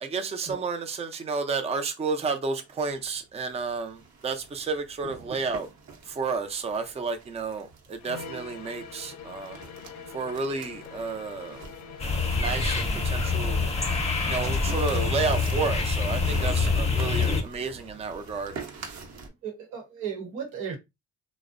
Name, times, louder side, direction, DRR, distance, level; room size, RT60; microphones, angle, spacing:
voice 1, 0.0-5.7 6.1-9.6 10.1-11.6 12.4-13.7 14.3-18.5, right 4 dB, 20° right, 0.4 m, -31 dB
sound 1, 2.6-19.3, right 3 dB, 60° right, 0.8 m, -45 dB
sound 2, 8.0-14.1, left 5 dB, 65° left, 0.5 m, -44 dB
sound 3, 12.0-17.4, left 4 dB, 20° left, 0.7 m, -26 dB
voice 2, 19.4-20.8, right 7 dB, 90° right, 0.9 m, -35 dB
2.5 x 2.0 x 2.5 m
cardioid pair, 90°, 30 cm